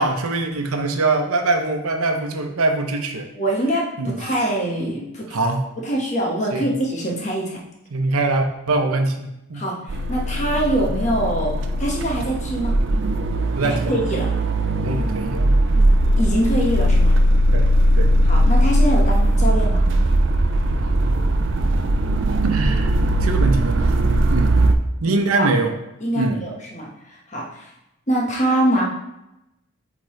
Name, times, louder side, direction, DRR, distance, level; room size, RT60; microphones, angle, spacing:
voice 1, 0.0-3.3 4.0-4.2 5.3-5.6 6.5-6.7 7.9-9.6 13.6-13.9 14.8-15.9 17.5-18.1 22.4-22.9 23.2-24.7 25.0-25.7 26.1-26.4, right 2 dB, 85° right, 5 dB, 0.8 m, -23 dB
voice 2, 3.3-5.2 5.8-7.6 9.5-12.8 13.6-14.3 16.2-17.1 18.2-19.8 25.0-25.5 26.0-27.7 28.1-28.8, right 1 dB, 35° left, -2 dB, 1.3 m, -24 dB
sound 1, 9.9-24.7, right 1 dB, 55° right, 0.5 m, -19 dB
8.4 x 3.9 x 3.2 m, 0.89 s
head